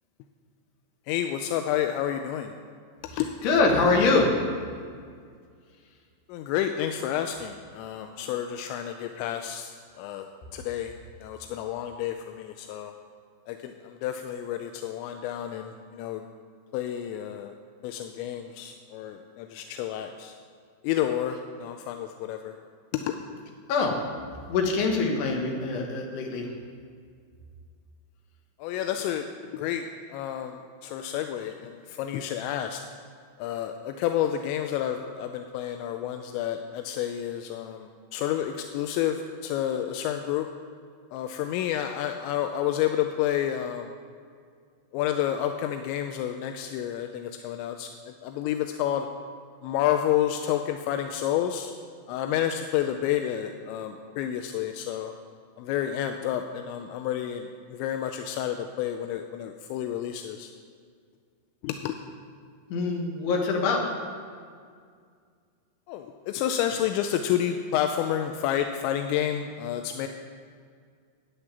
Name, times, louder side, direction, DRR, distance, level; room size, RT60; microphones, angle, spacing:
voice 1, 1.1-2.5 3.2-3.3 6.3-9.7 10.0-10.3 10.5-10.9 11.2-12.9 13.5-16.2 16.7-17.5 17.8-20.3 20.8-22.5 22.9-23.2 28.6-29.3 29.5-29.9 30.1-32.8 33.4-40.5 41.1-43.9 44.9-47.9 48.2-49.1 49.6-51.7 52.1-55.1 55.6-60.5 61.6-61.9 65.9-70.1, left 10 dB, 80° left, 5 dB, 2.7 m, -30 dB
voice 2, 3.1-4.3 23.7-24.0 24.5-26.5 62.7-63.8, left 3 dB, 65° left, 0 dB, 3.5 m, -24 dB
11.0 x 9.9 x 7.3 m, 2.1 s
omnidirectional pair, 5.6 m